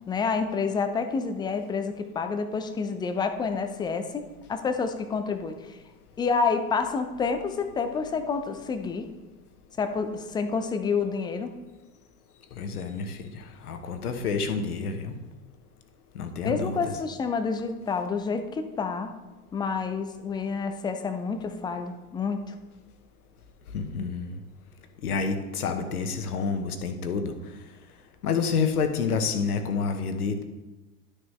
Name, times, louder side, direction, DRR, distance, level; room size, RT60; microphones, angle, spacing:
voice 1, 0.1-5.8 6.2-9.1 9.8-11.5 16.4-19.1 19.5-22.6, left 5 dB, 10° left, 8 dB, 0.4 m, -29 dB
voice 2, 12.6-15.1 16.1-16.9 23.7-24.4 25.0-27.3 28.2-30.4, left 5 dB, 70° left, 7 dB, 1.1 m, -29 dB
11.5 x 6.5 x 3.2 m, 1.2 s
figure-of-eight pair, 90°, 46 cm